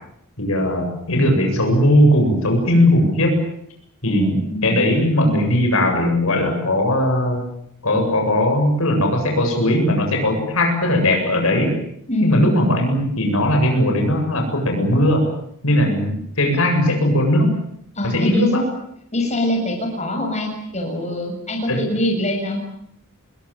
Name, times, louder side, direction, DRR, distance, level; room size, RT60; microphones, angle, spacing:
voice 1, 0.4-3.4 4.0-7.4 7.8-11.7 12.2-15.3 15.6-17.5 18.0-18.7 21.7-21.8, left 1 dB, 70° left, 3 dB, 7.9 m, -18 dB
voice 2, 4.0-4.8 12.1-12.5 18.0-18.5 19.1-22.6, left 1 dB, 30° left, 2 dB, 7.1 m, -23 dB
28.5 x 22.0 x 9.1 m, 0.75 s
head